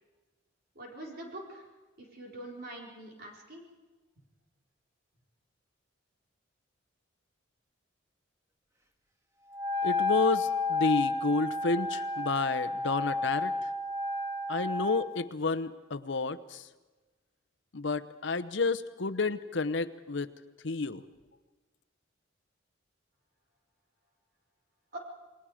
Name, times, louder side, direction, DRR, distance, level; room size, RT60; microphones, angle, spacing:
voice 1, 0.7-1.7 2.0-3.6 24.9-25.0, right 1 dB, 50° right, -1 dB, 4.3 m, -44 dB
Wind instrument woodwind instrument, 9.5-15.1, left 3 dB, 15° right, 1.9 m, -31 dB
voice 2, 9.8-13.5 14.5-16.7 17.7-20.3 20.6-21.0, left 3 dB, 65° left, 10 dB, 0.9 m, -30 dB
28.5 x 21.5 x 5.0 m, 1.2 s
head